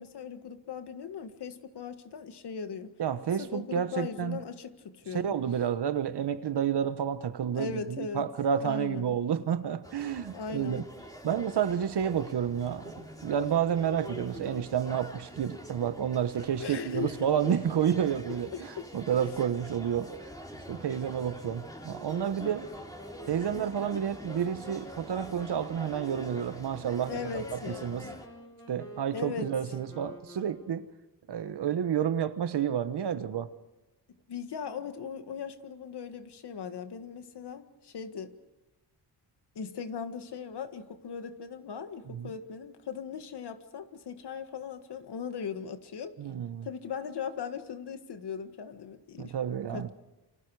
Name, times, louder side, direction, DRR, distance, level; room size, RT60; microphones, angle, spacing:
voice 1, 0.0-2.9 3.4-5.4 7.5-8.3 8.6-9.2 10.3-10.8 16.6-17.5 18.5-18.8 27.1-28.2 29.1-29.5 34.3-38.3 39.6-46.2 46.6-49.4 49.7-49.9, left 6 dB, 75° left, 1.8 m, -39 dB
voice 2, 3.0-4.4 5.1-10.8 11.2-18.5 18.9-20.1 20.7-22.7 23.3-27.2 27.7-28.1 28.7-30.9 31.3-33.5 42.1-42.3 46.2-46.7 49.2-49.9, right 8 dB, 80° right, 1.3 m, -30 dB
sound 1, 9.8-28.3, equal, 10° left, 3.7 m, -46 dB
Wind instrument woodwind instrument, 22.0-31.0, left 1 dB, 35° left, 7.6 m, -49 dB
29.0 x 25.5 x 4.9 m
wide cardioid pair, 95°, 40 cm